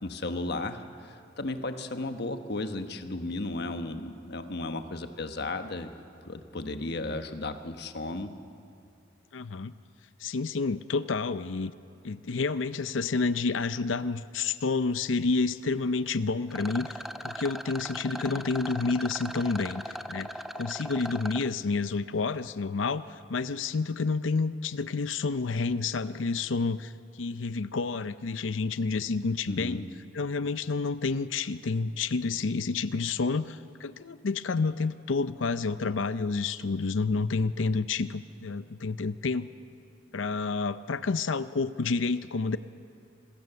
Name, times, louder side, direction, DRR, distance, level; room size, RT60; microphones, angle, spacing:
voice 1, 0.0-5.9 6.2-8.3 29.5-29.9, left 2 dB, 60° left, 7 dB, 1.3 m, -34 dB
voice 2, 9.3-9.7 10.2-11.7 12.0-20.3 20.5-23.0 23.3-26.9 27.2-29.8 30.1-39.5 40.1-42.6, left 4 dB, 85° left, 13 dB, 0.6 m, -29 dB
Rattle, 16.5-21.5, equal, ahead, 0.6 m, -39 dB
26.5 x 16.0 x 6.9 m, 2.5 s
head